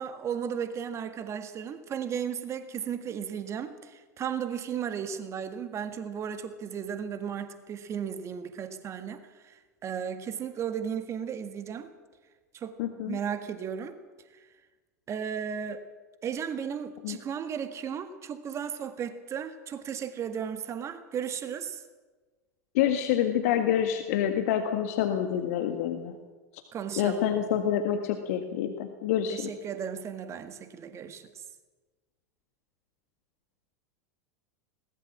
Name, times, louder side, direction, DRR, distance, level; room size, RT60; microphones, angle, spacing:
voice 1, 0.0-11.9 12.5-12.8 13.1-14.0 14.3-14.5 15.1-15.9 16.2-21.8 26.7-27.3 29.3-31.4, right 8 dB, 30° right, 9 dB, 1.8 m, -35 dB
voice 2, 12.8-13.2 17.0-17.2 22.7-26.1 27.0-29.5, left 10 dB, 60° left, 7 dB, 1.8 m, -27 dB
21.0 x 18.5 x 7.3 m, 1.3 s
figure-of-eight pair, 85°, 9 cm